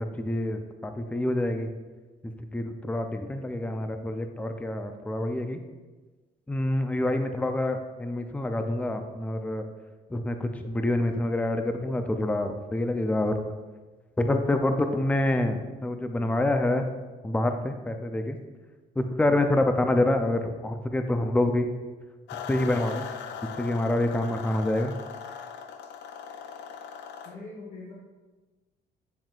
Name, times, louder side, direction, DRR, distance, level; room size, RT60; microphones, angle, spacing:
voice 1, 0.0-1.7 2.5-5.6 6.5-9.7 10.1-13.3 14.2-16.9 17.2-18.4 19.0-21.7 22.5-23.1 23.6-24.9, left 1 dB, 10° left, 6 dB, 0.5 m, -27 dB
sound 1, 22.3-27.3, left 7 dB, 80° left, 0.5 m, -39 dB
voice 2, 27.2-27.9, left 3 dB, 45° left, -4 dB, 1.2 m, -42 dB
7.4 x 7.4 x 2.5 m, 1.3 s
cardioid pair, 105°, 18 cm